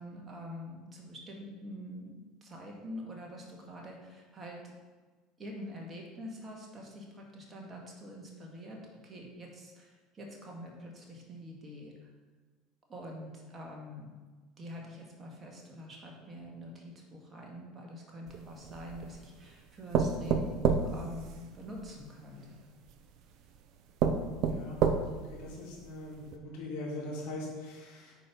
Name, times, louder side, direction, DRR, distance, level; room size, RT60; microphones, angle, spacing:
voice 1, 0.0-4.6 5.4-11.9 12.9-14.1 14.6-22.5, equal, 25° right, -1 dB, 2.0 m, -46 dB
sound 1, 18.3-19.2 19.9-21.9 22.9-23.0 23.5-23.6 24.0-25.3 25.8-25.9 26.3-26.4, right 6 dB, 50° right, 0.6 m, -29 dB
voice 2, 24.5-24.8 25.1-28.2, left 1 dB, 60° left, -3 dB, 2.6 m, -41 dB
9.0 x 4.6 x 5.4 m, 1.3 s
figure-of-eight pair, 70°, 0 cm